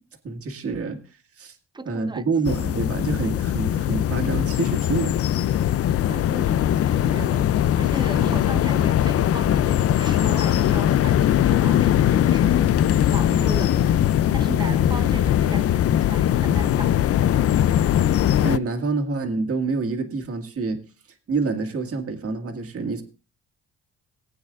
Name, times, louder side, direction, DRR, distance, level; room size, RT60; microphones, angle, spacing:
voice 1, 0.2-1.0 1.4-1.6 1.9-5.3 8.1-8.4 18.4-20.8 21.3-23.0, right 4 dB, 50° right, 1.8 m, -27 dB
voice 2, 1.7-2.6 6.0-7.5 7.8-12.8 13.1-14.0 14.3-17.2, right 3 dB, 15° right, 0.6 m, -37 dB
sound 1, 2.5-18.6, left 11 dB, 50° left, 0.5 m, -20 dB
sound 2, 8.4-17.7, left 6 dB, 75° left, 2.8 m, -42 dB
19.5 x 8.6 x 2.4 m
cardioid pair, 90°, 30 cm